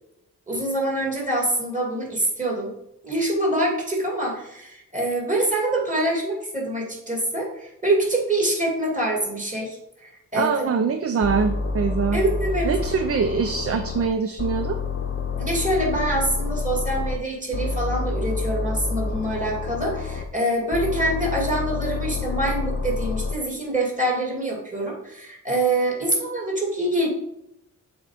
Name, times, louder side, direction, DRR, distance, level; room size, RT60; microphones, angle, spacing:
voice 1, 0.5-2.7 3.0-10.7 12.1-12.7 15.4-27.1, right 1 dB, 25° right, -2 dB, 2.4 m, -25 dB
voice 2, 10.3-12.2 12.6-14.8, right 5 dB, 45° right, 7 dB, 0.5 m, -23 dB
sound 1, 11.2-14.1 14.4-17.2 17.5-20.2 20.7-23.3, left 4 dB, 35° left, 0.7 m, -28 dB
7.1 x 3.6 x 5.0 m, 0.81 s
wide cardioid pair, 110°, 33 cm